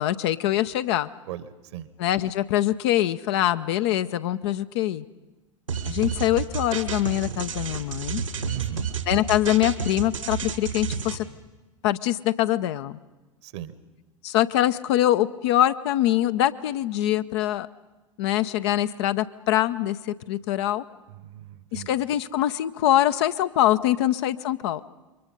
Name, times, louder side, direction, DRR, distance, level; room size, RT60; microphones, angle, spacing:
voice 1, 0.0-1.1 2.0-5.0 5.8-8.2 9.1-11.3 11.8-13.0 14.2-17.7 18.2-20.8 21.7-24.8, left 13 dB, 55° left, 11 dB, 0.8 m, -24 dB
sound 1, 5.7-11.2, right 7 dB, 80° right, 1.8 m, -30 dB
voice 2, 8.4-8.9 13.4-13.7 21.2-21.9, right 12 dB, 55° right, 15 dB, 1.2 m, -36 dB
28.0 x 23.5 x 5.3 m, 1.1 s
figure-of-eight pair, 85°, 17 cm